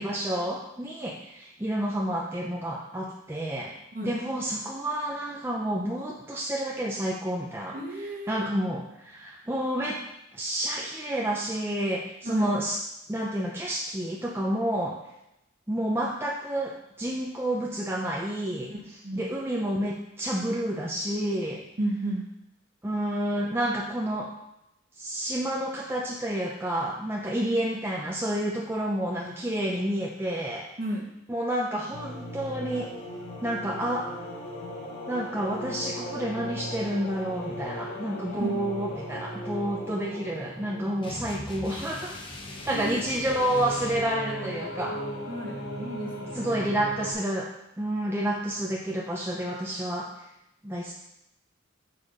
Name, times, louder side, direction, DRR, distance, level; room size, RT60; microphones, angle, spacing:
voice 1, 0.0-3.7 4.0-7.8 8.3-10.0 10.3-12.8 13.1-15.0 15.7-18.7 19.2-21.6 22.8-24.3 25.0-30.7 31.3-32.9 33.4-34.1 35.1-42.2 42.7-45.0 46.3-50.1 50.6-50.9, right 1 dB, 10° right, -3 dB, 0.6 m, -29 dB
voice 2, 7.7-8.5 12.2-12.5 18.7-18.8 19.0-19.3 21.8-22.3 30.8-31.1 38.4-38.5 42.7-43.3 45.3-46.6, right 1 dB, 40° right, 1 dB, 1.1 m, -33 dB
sound 1, 31.9-47.1, equal, 50° left, 2.0 m, -38 dB
sound 2, 41.0-44.1, left 1 dB, 25° left, 0.8 m, -40 dB
6.6 x 4.2 x 5.0 m, 0.83 s
head